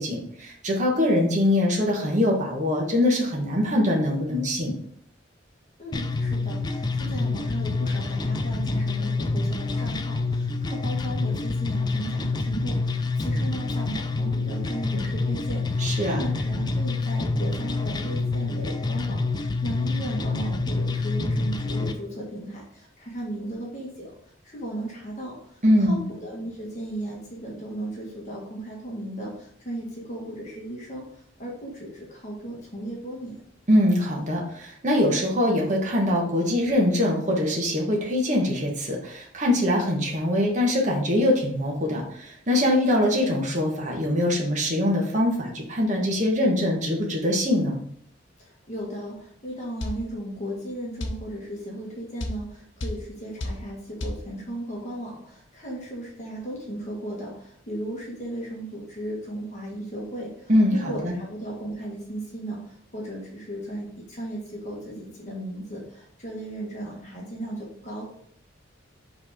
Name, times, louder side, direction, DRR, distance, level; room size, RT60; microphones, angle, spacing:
voice 1, 0.0-4.7 15.8-16.3 25.6-26.0 33.7-47.8 60.5-61.1, left 1 dB, 40° right, -1 dB, 1.3 m, -23 dB
voice 2, 5.8-33.3 48.4-68.0, right 1 dB, 35° left, -4 dB, 1.6 m, -36 dB
sound 1, 5.9-21.9, left 3 dB, 20° left, 0.3 m, -27 dB
sound 2, 49.8-50.0 51.0-51.2 52.2-52.4 52.8-53.0 53.4-53.6 54.0-54.2, left 1 dB, 70° left, 0.8 m, -30 dB
5.5 x 3.5 x 4.9 m, 0.65 s
head